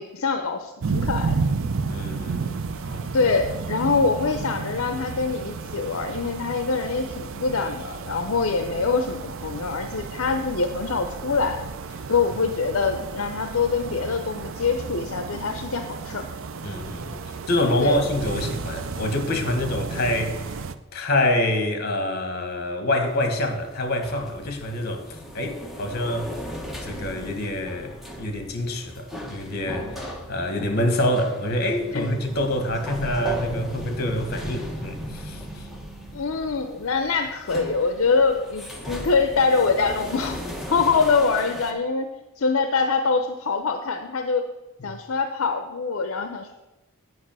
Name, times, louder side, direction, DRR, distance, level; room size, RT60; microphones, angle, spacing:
voice 1, 0.0-1.4 3.1-11.6 12.1-16.3 17.8-18.0 31.9-32.1 36.1-40.4 40.7-42.1 42.4-44.4 44.8-46.5, left 4 dB, 65° left, 0.6 m, -24 dB
sound 1, 0.8-20.7, right 4 dB, 65° right, 0.5 m, -32 dB
voice 2, 1.8-3.1 16.6-17.2 17.5-20.6 20.9-26.3 26.8-35.7 44.8-44.9, left 1 dB, 45° left, 1.4 m, -26 dB
sound 2, 23.1-41.7, equal, ahead, 1.2 m, -37 dB
9.7 x 5.4 x 7.5 m
head